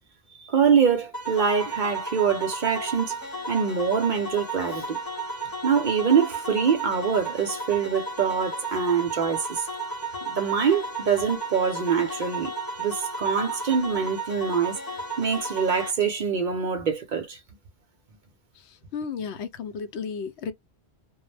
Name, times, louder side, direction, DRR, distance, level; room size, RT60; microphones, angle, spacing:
voice 1, 0.4-3.2 3.5-5.0 5.6-9.6 10.4-12.5 12.8-14.8 15.2-17.4, right 6 dB, 55° right, 0.6 m, -24 dB
sound 1, 1.1-15.9, right 2 dB, 20° left, 0.8 m, -34 dB
voice 2, 18.9-20.5, left 6 dB, 80° left, 0.9 m, -33 dB
2.2 x 2.0 x 3.1 m
omnidirectional pair, 1.1 m